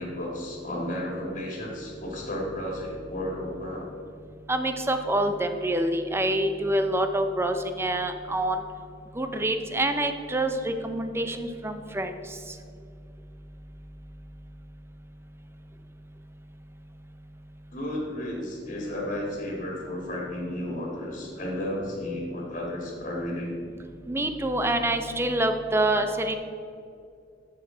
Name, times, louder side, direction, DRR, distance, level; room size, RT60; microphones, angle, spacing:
voice 1, 0.0-3.9 17.7-23.5, left 1 dB, 45° left, -2 dB, 2.0 m, -33 dB
voice 2, 4.5-8.6 9.2-12.1 24.1-26.3, right 1 dB, 15° right, 7 dB, 0.6 m, -26 dB
13.5 x 5.4 x 3.9 m, 2.5 s
head